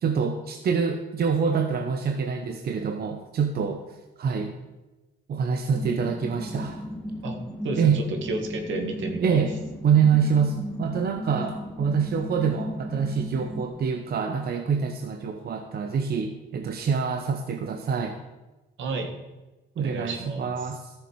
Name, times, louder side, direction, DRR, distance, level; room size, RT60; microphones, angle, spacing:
voice 1, 0.0-4.5 5.3-6.8 7.8-8.0 9.2-9.5 9.8-18.2 19.8-20.9, right 6 dB, 50° right, 5 dB, 0.9 m, -26 dB
sound 1, 5.7-13.7, equal, 5° left, 1.6 m, -35 dB
voice 2, 7.6-9.4 18.8-19.1 19.8-20.6, right 3 dB, 75° right, 5 dB, 1.7 m, -31 dB
13.0 x 6.9 x 4.7 m, 1.1 s
cardioid pair, 90°, 20 cm